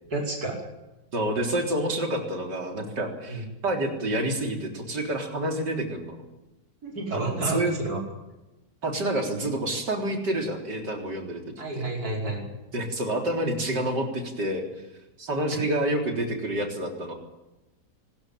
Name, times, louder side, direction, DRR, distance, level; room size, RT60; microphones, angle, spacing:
voice 1, 0.1-0.6 3.3-3.4 6.8-8.0 11.6-12.5 15.5-15.6, right 2 dB, 60° right, -1 dB, 5.9 m, -30 dB
voice 2, 1.1-6.2 7.1-7.7 8.8-11.4 11.7-11.8 12.7-14.6 15.2-17.1, right 1 dB, 75° right, 3 dB, 4.4 m, -28 dB
24.5 x 14.0 x 9.3 m, 0.98 s
omnidirectional pair, 1.8 m